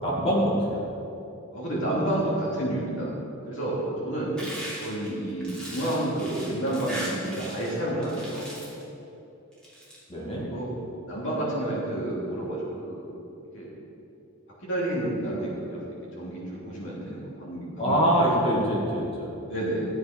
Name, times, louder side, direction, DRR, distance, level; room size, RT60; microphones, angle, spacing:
voice 1, 0.0-0.9 10.1-10.5 17.8-19.3, equal, 25° left, -4 dB, 2.3 m, -24 dB
voice 2, 1.5-3.1 3.4-4.4 4.8-8.5 10.4-10.7 11.0-13.0 13.5-13.7 14.6-15.8 16.2-18.1 19.4-19.8, right 1 dB, 60° left, -5 dB, 3.1 m, -30 dB
sound 1, 4.4-7.8 8.0-8.8 9.5-10.0, equal, 5° left, 2.8 m, -38 dB
13.0 x 7.9 x 5.3 m, 2.8 s
head